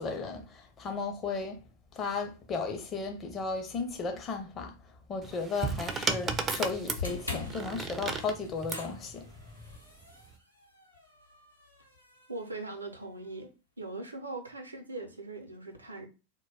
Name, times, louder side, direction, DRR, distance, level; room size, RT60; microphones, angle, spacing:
voice 1, 0.0-1.6 1.9-4.8 5.1-9.3, left 4 dB, 25° left, 0.5 m, -35 dB
sound 1, 5.2-8.9 9.9-10.3, right 4 dB, 20° right, 0.3 m, -34 dB
sound 2, 6.9-13.2, left 4 dB, 85° left, 0.8 m, -43 dB
voice 2, 12.3-13.5 13.8-16.1, right 2 dB, 80° right, 0.5 m, -40 dB
2.2 x 2.2 x 3.2 m
figure-of-eight pair, 90°, 0 cm